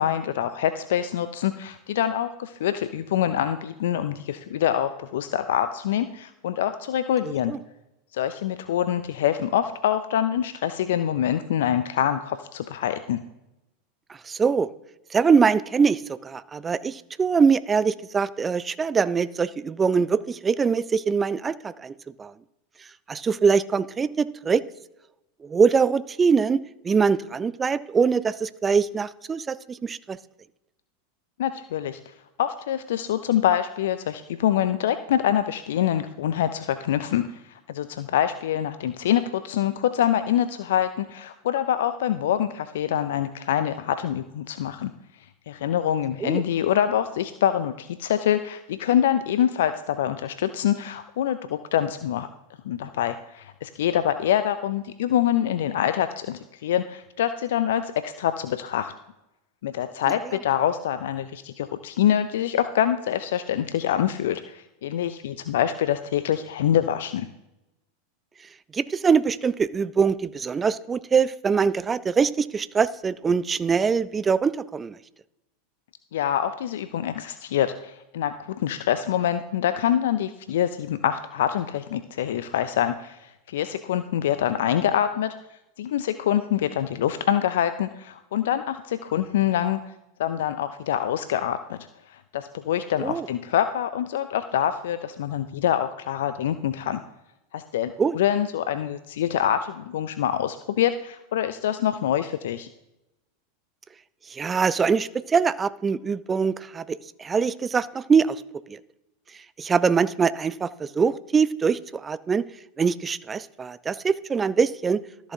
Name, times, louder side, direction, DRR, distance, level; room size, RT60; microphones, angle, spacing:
voice 1, 0.0-7.5 8.1-13.2 31.4-32.0 32.4-37.4 37.7-44.9 45.5-52.3 52.7-58.9 59.6-67.3 76.1-85.3 85.8-89.8 90.2-91.8 92.1-97.0 97.5-102.7, left 10 dB, 65° left, 11 dB, 0.4 m, -25 dB
voice 2, 7.2-7.6 14.3-14.7 15.1-21.9 22.2-22.3 23.1-24.6 25.4-30.2 46.2-46.4 68.7-75.0 93.0-93.3 98.0-98.2 104.3-108.4 108.7-108.8 109.6-112.5 112.8-115.0, right 5 dB, 20° right, 17 dB, 0.4 m, -23 dB
13.5 x 7.2 x 2.7 m, 0.93 s
figure-of-eight pair, 90°, 0 cm